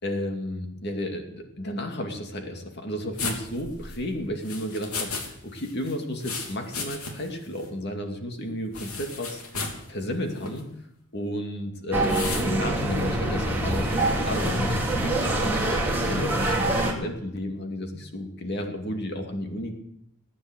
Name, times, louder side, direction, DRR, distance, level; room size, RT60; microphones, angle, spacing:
voice 1, 0.0-5.2 5.4-10.6 11.1-15.6 16.1-19.7, left 1 dB, 50° left, 4 dB, 2.5 m, -32 dB
sound 1, 3.2-5.3 5.6-7.4 7.6-7.7 8.7-9.8 10.4-10.6 12.1-12.5, left 4 dB, 90° left, 3.2 m, -34 dB
sound 2, 11.9-16.9, right 1 dB, 10° right, 3.0 m, -25 dB
18.5 x 9.5 x 8.1 m, 0.77 s
head